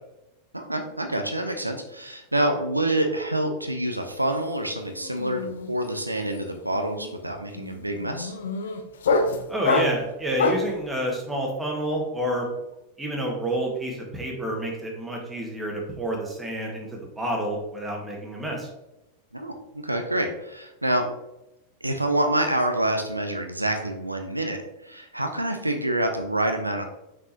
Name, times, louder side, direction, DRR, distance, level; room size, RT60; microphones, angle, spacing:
voice 1, 0.5-8.4 19.3-21.1 21.8-26.8, right 1 dB, 85° right, 5 dB, 0.6 m, -27 dB
sound 1, 4.0-4.3 4.5-10.8, left 3 dB, 65° left, 0.6 m, -27 dB
voice 2, 9.5-12.5 13.0-18.7, right 1 dB, 10° right, -1 dB, 1.7 m, -29 dB
6.2 x 5.4 x 2.8 m, 0.92 s
figure-of-eight pair, 90°, 0 cm